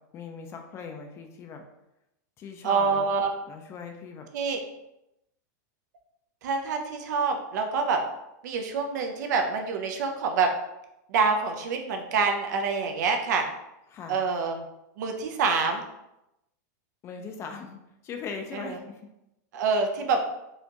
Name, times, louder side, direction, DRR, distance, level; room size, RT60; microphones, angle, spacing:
voice 1, 0.1-1.6 2.4-3.1 3.5-4.3 13.9-14.2 17.0-19.0, left 5 dB, 25° left, 4 dB, 0.4 m, -39 dB
voice 2, 2.6-3.3 4.3-4.6 6.4-8.0 8.4-10.5 11.1-13.4 14.1-14.6 15.0-15.8 18.5-18.8 19.5-20.2, right 4 dB, 70° right, 4 dB, 0.6 m, -26 dB
4.2 x 2.4 x 2.9 m, 0.87 s
supercardioid pair, 145°, 10 cm